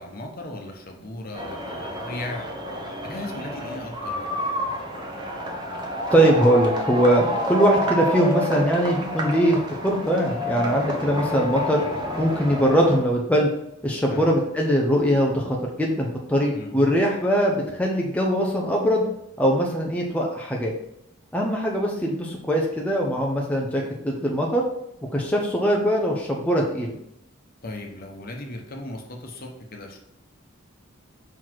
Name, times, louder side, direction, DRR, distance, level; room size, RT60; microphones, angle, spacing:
voice 1, 0.0-2.5 3.0-4.3 14.1-14.3 16.5-17.0 27.6-30.0, left 1 dB, 45° left, 1 dB, 1.1 m, -36 dB
sound 1, 1.3-13.0, equal, 20° right, 1.0 m, -29 dB
voice 2, 6.1-11.8 12.2-13.5 13.8-19.0 19.4-20.7 21.3-24.6 25.1-26.9, equal, 5° left, -2 dB, 0.7 m, -21 dB
5.9 x 4.2 x 4.6 m, 0.80 s
head